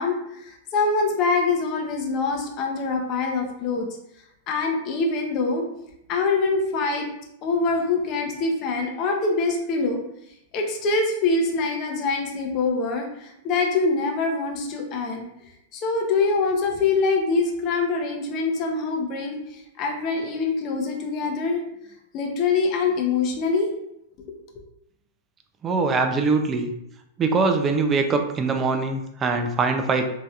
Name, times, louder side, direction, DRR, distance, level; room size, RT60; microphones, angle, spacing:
voice 1, 0.0-3.9 4.5-5.7 6.1-7.1 7.4-10.0 10.5-15.3 15.7-21.6 22.1-23.7, left 4 dB, 35° left, 2 dB, 0.6 m, -24 dB
voice 2, 25.6-26.7 27.2-30.1, right 4 dB, 20° right, 5 dB, 0.4 m, -22 dB
3.2 x 2.7 x 2.3 m, 0.80 s
supercardioid pair, 150°, 0 cm